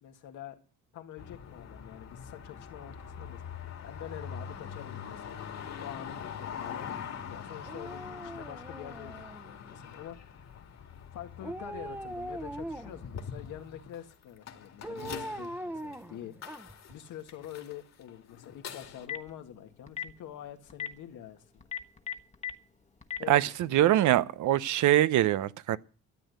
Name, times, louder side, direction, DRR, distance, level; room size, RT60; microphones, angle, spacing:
voice 1, 0.0-0.6 0.9-3.4 3.8-5.5 5.8-10.4 11.1-16.3 16.9-21.6 23.2-23.8, left 11 dB, 85° left, 1.9 m, -46 dB
sound 1, 1.2-19.1, left 7 dB, 60° left, 2.3 m, -43 dB
Dog, 7.6-9.7 11.4-13.1 14.8-16.9 17.3-17.4, right 1 dB, 5° right, 1.0 m, -41 dB
Telephone, 18.8-19.3 19.9-20.1 20.7-20.9 21.6-22.5 23.0-23.2, left 10 dB, 25° left, 1.2 m, -34 dB
voice 2, 23.3-25.8, right 13 dB, 75° right, 0.8 m, -24 dB
13.5 x 8.3 x 7.9 m
cardioid pair, 90°, 30 cm